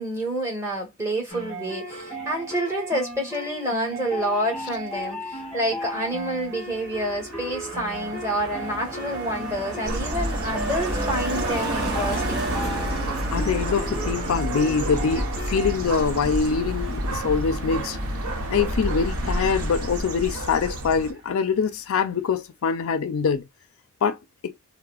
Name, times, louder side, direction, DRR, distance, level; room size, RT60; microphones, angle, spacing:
voice 1, 0.0-12.5, right 1 dB, 15° right, 1.3 m, -28 dB
sound 1, 1.3-15.8, equal, 5° left, 1.4 m, -35 dB
Car passing by, 5.9-20.7 21.0-21.3, right 2 dB, 50° right, 1.0 m, -34 dB
sound 2, 9.8-21.1, equal, 85° right, 0.9 m, -29 dB
voice 2, 13.3-18.0 18.5-23.4 24.0-24.2 24.4-24.5, left 6 dB, 65° left, 0.4 m, -24 dB
3.9 x 2.0 x 2.3 m
head